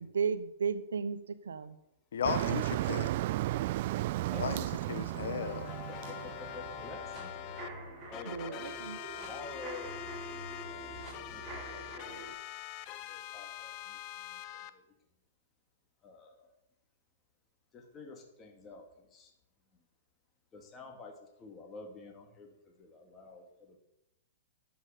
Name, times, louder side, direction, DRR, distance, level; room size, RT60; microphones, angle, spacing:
voice 1, 0.0-1.8 8.3-9.0, right 6 dB, 85° right, 1.0 m, -34 dB
voice 2, 2.1-3.1 4.4-5.7, left 8 dB, 75° left, 1.1 m, -35 dB
Motor vehicle (road), 2.2-7.2, right 16 dB, 55° right, 0.3 m, -34 dB
voice 3, 4.2-4.7 5.9-7.3 8.1-10.0 10.7-12.2 12.9-14.9 16.0-16.5 17.7-19.3 19.7-19.8 20.5-23.8, left 3 dB, 20° left, 2.3 m, -50 dB
sound 1, 5.1-7.7 8.1-14.7, left 12 dB, 40° left, 0.8 m, -44 dB
sound 2, 6.0-12.3, right 1 dB, 25° right, 5.5 m, -46 dB
11.5 x 8.3 x 6.7 m
hypercardioid pair, 130°, 0 cm